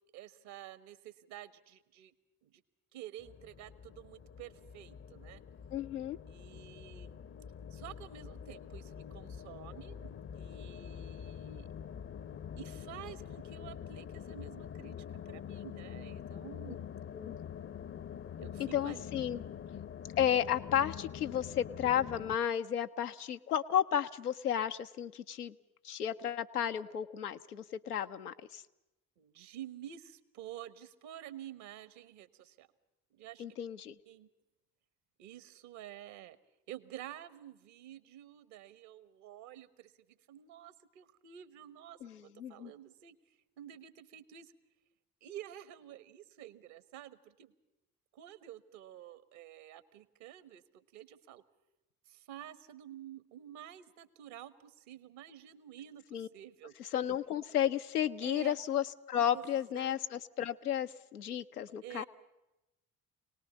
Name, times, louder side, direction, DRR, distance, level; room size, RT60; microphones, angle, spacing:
voice 1, 0.1-2.1 2.4-2.6 2.9-5.4 6.2-7.2 7.7-11.7 12.6-16.8 18.4-19.1 29.2-32.7 33.1-33.4 34.0-34.3 35.2-36.4 36.7-43.2 43.6-44.5 45.2-47.5 48.1-51.4 52.1-56.0 56.3-56.7 58.2-58.6 59.3-59.5 59.7-60.0 61.8-62.0, right 12 dB, 65° right, 15 dB, 1.4 m, -50 dB
sound 1, 3.2-22.4, left 8 dB, 30° left, 0.7 m, -45 dB
voice 2, 5.7-6.2 17.1-17.3 18.6-19.4 20.2-25.5 25.8-28.6 33.4-34.0 42.0-42.7 56.1-56.3 56.9-62.0, left 10 dB, 85° left, 8 dB, 0.7 m, -33 dB
25.0 x 19.0 x 7.2 m, 0.95 s
figure-of-eight pair, 45°, 45 cm